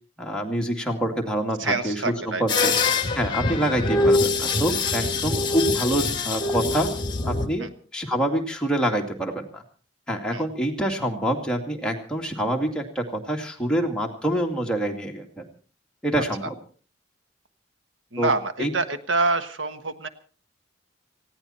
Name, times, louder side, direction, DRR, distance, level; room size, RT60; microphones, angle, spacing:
voice 1, 0.2-2.7 3.1-6.9 7.2-9.6 10.1-15.5 16.0-16.5 18.2-18.3 18.6-18.7, right 1 dB, 5° left, 0 dB, 2.4 m, -26 dB
voice 2, 1.6-2.7 5.0-5.1 7.6-7.7 10.3-10.4 16.2-16.3 18.1-20.1, right 3 dB, 85° right, 10 dB, 1.3 m, -26 dB
sound 1, 2.5-7.5, left 3 dB, 25° left, 2.0 m, -24 dB
19.0 x 16.5 x 4.3 m, 0.40 s
head